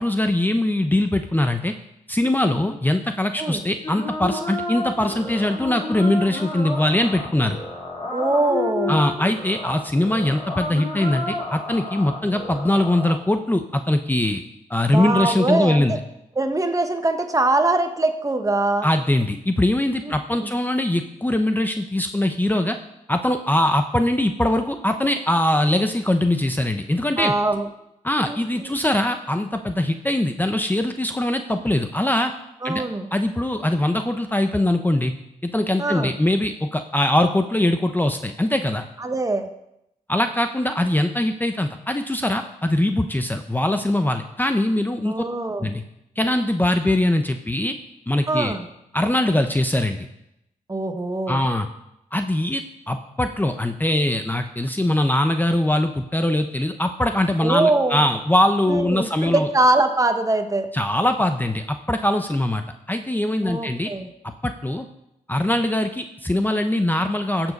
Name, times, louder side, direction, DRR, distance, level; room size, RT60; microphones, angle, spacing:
voice 1, 0.0-1.7 2.1-7.6 8.9-14.4 14.7-15.9 18.8-22.8 23.1-27.3 28.0-32.3 32.6-32.8 33.1-35.1 35.4-38.9 40.1-45.1 45.6-45.8 46.2-47.7 48.1-48.5 48.9-50.1 51.3-51.7 52.1-59.5 60.7-63.9 64.4-64.9 65.3-67.5, left 1 dB, 15° left, 7 dB, 0.8 m, -22 dB
sound 1, 3.8-13.2, left 2 dB, 30° left, 3.7 m, -31 dB
voice 2, 8.1-9.0 14.9-16.0 16.4-18.9 20.0-20.5 27.2-27.7 28.2-28.7 32.6-33.1 35.8-36.1 39.0-39.5 45.0-45.7 48.3-48.6 50.7-51.4 57.4-58.0 58.7-60.7 63.4-64.1, right 2 dB, 25° right, 6 dB, 1.3 m, -22 dB
14.5 x 7.5 x 5.3 m, 0.83 s
cardioid pair, 75°, 14 cm